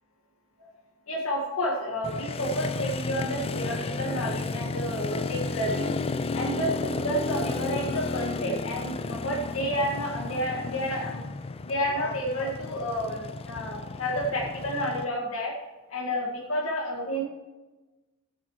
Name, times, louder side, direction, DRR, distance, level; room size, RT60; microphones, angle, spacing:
voice 1, 1.1-5.9 6.3-11.3 11.6-15.5 15.9-17.2, equal, 80° left, -3 dB, 1.9 m, -30 dB
Motorcycle, 2.0-15.0, left 3 dB, 25° left, 0.4 m, -33 dB
15.0 x 8.2 x 3.2 m, 1.2 s
head